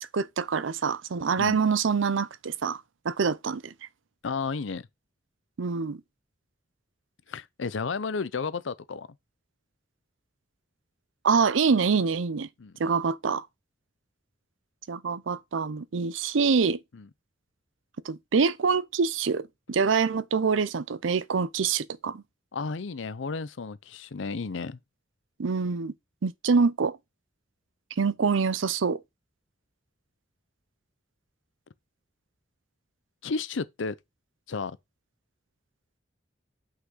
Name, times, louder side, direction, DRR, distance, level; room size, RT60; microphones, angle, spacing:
voice 1, 0.1-2.8 3.0-3.7 5.6-6.0 11.2-12.5 12.8-13.4 14.9-16.8 18.0-22.2 25.4-25.9 26.2-27.0 28.0-29.0, right 5 dB, 85° right, 0.6 m, -25 dB
voice 2, 4.2-4.8 7.3-9.1 12.6-12.8 16.9-17.1 22.5-24.8 33.2-34.0 34.5-34.8, left 4 dB, 75° left, 0.6 m, -32 dB
5.8 x 5.7 x 3.8 m
head